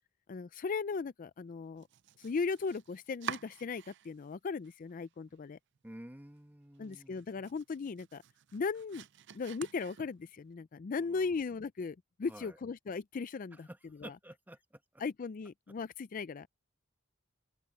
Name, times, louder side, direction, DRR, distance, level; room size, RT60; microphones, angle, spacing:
voice 1, 0.3-1.9 2.2-5.6 6.8-8.2 8.5-9.0 9.3-13.7 14.0-14.1 15.0-16.5, left 4 dB, 40° left, 0.4 m, -37 dB
Domestic sounds home sounds, 1.8-4.3 4.6-5.4 5.8-5.9 6.3-6.4 6.8-10.4, right 8 dB, 60° right, 0.5 m, -48 dB
voice 2, 5.8-7.3 10.9-11.4 12.3-12.6 13.5-15.0, right 1 dB, 10° right, 1.1 m, -51 dB
head